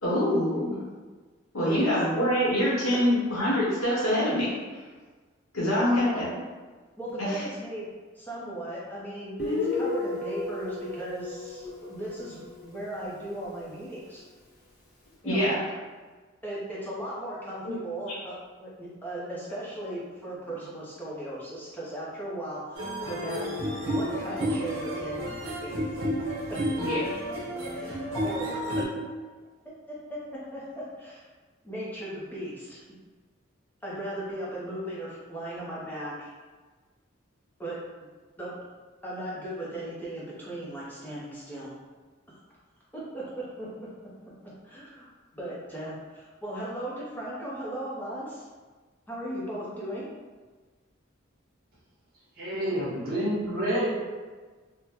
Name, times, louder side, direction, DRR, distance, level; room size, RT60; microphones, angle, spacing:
voice 1, 0.0-0.8 1.5-4.5 5.5-6.3 7.2-7.4 15.2-15.6 17.6-17.7 26.8-27.0, equal, 90° left, -8 dB, 1.0 m, -25 dB
voice 2, 1.6-1.9 5.8-6.2 7.0-7.9 8.1-14.2 15.2-15.5 16.4-25.8 26.5-26.7 27.7-29.0 29.9-31.3 31.6-32.8 33.8-36.3 37.6-37.8 38.4-38.6 39.0-41.7 42.3-42.4 42.9-43.9 44.6-48.4 49.1-50.1, right 1 dB, 10° left, -7 dB, 0.6 m, -37 dB
Guitar, 9.4-12.9, left 3 dB, 50° left, 0.8 m, -32 dB
sound 1, 22.7-28.8, equal, 70° right, 0.7 m, -31 dB
voice 3, 52.3-53.9, equal, 45° right, -7 dB, 1.1 m, -28 dB
3.5 x 2.1 x 2.8 m, 1.4 s
head